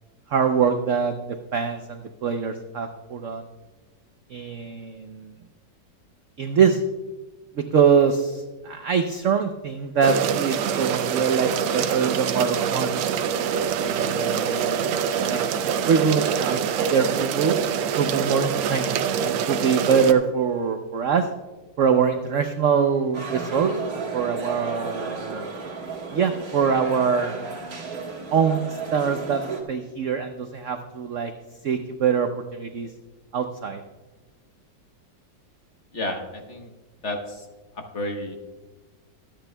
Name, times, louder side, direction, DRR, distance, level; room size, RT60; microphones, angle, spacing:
voice 1, 0.3-1.2 1.5-3.5 4.3-5.4 6.4-6.8 7.6-13.2 13.8-15.4 15.8-16.6 16.9-17.6 18.0-21.3 21.8-25.5 26.1-27.4 28.3-29.4 29.7-31.3 31.6-32.9 33.3-33.8, right 6 dB, 70° right, 6 dB, 0.7 m, -24 dB
sound 1, 10.0-20.1, right 7 dB, 90° right, 1.4 m, -25 dB
sound 2, 23.1-29.6, right 4 dB, 50° right, 1.9 m, -33 dB
voice 2, 35.9-36.7 37.0-37.5 37.7-38.3, left 1 dB, 45° left, 3 dB, 1.2 m, -31 dB
23.5 x 8.9 x 2.2 m, 1.2 s
omnidirectional pair, 2.0 m